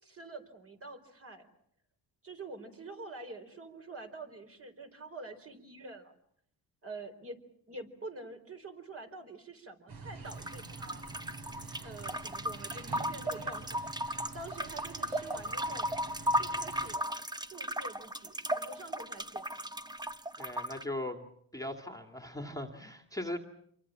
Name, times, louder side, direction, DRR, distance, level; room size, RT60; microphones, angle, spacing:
voice 1, 0.0-1.5 2.2-6.1 6.8-7.4 7.7-11.0 11.8-15.9 16.4-17.1 17.4-19.5, right 2 dB, 35° right, 5 dB, 4.4 m, -46 dB
sound 1, 9.9-17.0, right 3 dB, 55° right, 4.7 m, -47 dB
sound 2, 10.2-20.8, equal, 10° right, 1.0 m, -36 dB
voice 2, 20.4-21.3 21.5-23.4, left 1 dB, 10° left, 3 dB, 2.2 m, -39 dB
27.5 x 23.5 x 7.4 m, 0.69 s
cardioid pair, 110°, 42 cm